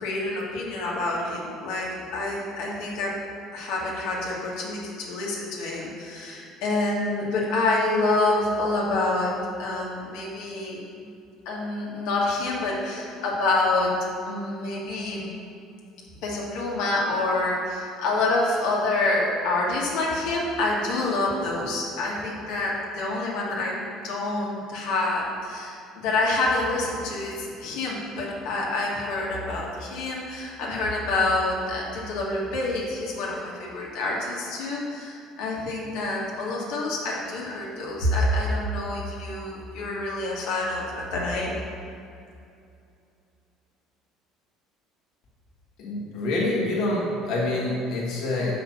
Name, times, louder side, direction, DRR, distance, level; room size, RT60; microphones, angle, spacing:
voice 1, 0.0-3.1 3.5-9.3 9.6-11.1 11.4-13.9 14.3-15.3 16.2-41.5, left 2 dB, 75° left, -3 dB, 1.4 m, -27 dB
voice 2, 45.8-48.5, left 2 dB, 60° left, -4 dB, 1.3 m, -26 dB
6.1 x 5.0 x 5.7 m, 2.6 s
cardioid pair, 150°, 0 cm